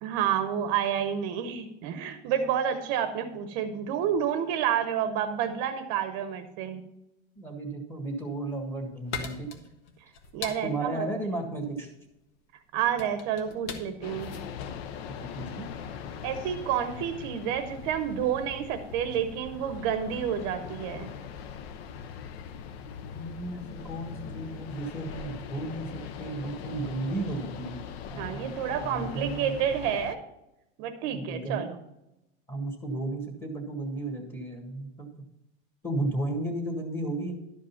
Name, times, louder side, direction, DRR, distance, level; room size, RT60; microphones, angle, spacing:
voice 1, 0.0-6.8 10.3-11.1 12.7-14.3 16.2-21.1 28.2-30.2 30.8-31.7, right 9 dB, 45° right, 8 dB, 0.8 m, -29 dB
voice 2, 7.3-9.5 10.6-11.9 15.1-15.7 23.1-27.8 28.1-28.5 28.8-29.5 31.1-31.7 32.5-35.1 35.8-37.4, right 2 dB, 5° left, 1 dB, 1.6 m, -34 dB
sound 1, 8.2-15.7, left 6 dB, 85° left, 1.5 m, -42 dB
sound 2, 14.0-30.2, left 7 dB, 65° left, 0.8 m, -41 dB
12.0 x 5.2 x 5.7 m, 0.88 s
supercardioid pair, 165°, 33 cm